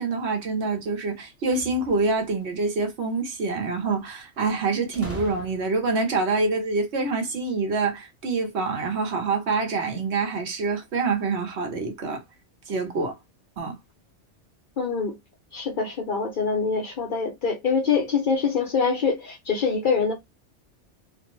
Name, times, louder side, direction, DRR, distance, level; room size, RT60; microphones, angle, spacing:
voice 1, 0.0-12.2 12.7-13.1 13.6-13.8, right 3 dB, 65° right, 1.1 m, -26 dB
sound 1, 1.5-2.5 4.9-6.0, left 1 dB, 15° right, 0.5 m, -40 dB
voice 2, 14.8-15.2 15.5-20.1, left 5 dB, 55° left, 0.6 m, -24 dB
2.5 x 2.0 x 2.9 m
omnidirectional pair, 1.2 m